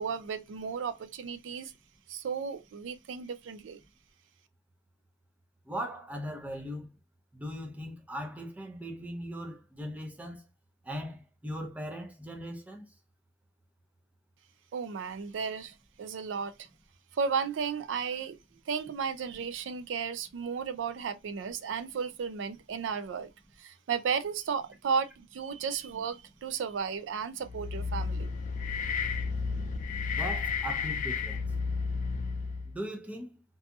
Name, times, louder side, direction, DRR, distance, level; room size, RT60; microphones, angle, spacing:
voice 1, 0.0-1.7 2.1-3.8 14.7-16.7 17.1-18.4 18.7-23.3 23.6-28.3, right 6 dB, 85° right, 0.4 m, -34 dB
voice 2, 5.7-6.9 7.3-10.4 10.8-12.9 30.2-31.5 32.7-33.4, equal, 10° right, 0.5 m, -39 dB
wind combined, 27.4-32.8, left 5 dB, 45° left, 0.3 m, -32 dB
2.6 x 2.6 x 2.3 m
head